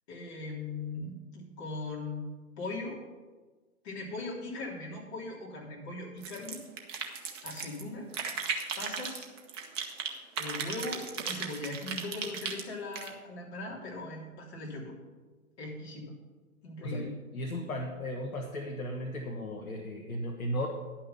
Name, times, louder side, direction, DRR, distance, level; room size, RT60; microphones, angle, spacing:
voice 1, 0.1-2.2 2.6-3.0 3.8-6.6 7.4-8.1 8.8-9.2 10.4-14.9 15.6-16.1 16.6-17.2, left 2 dB, 45° left, -2 dB, 3.3 m, -39 dB
sound 1, 6.2-7.8 8.1-10.1 10.4-13.1, right 6 dB, 20° right, 0.7 m, -36 dB
voice 2, 17.3-20.7, equal, 75° left, 2 dB, 1.5 m, -35 dB
11.0 x 5.8 x 6.9 m, 1.3 s
hypercardioid pair, 140°, 44 cm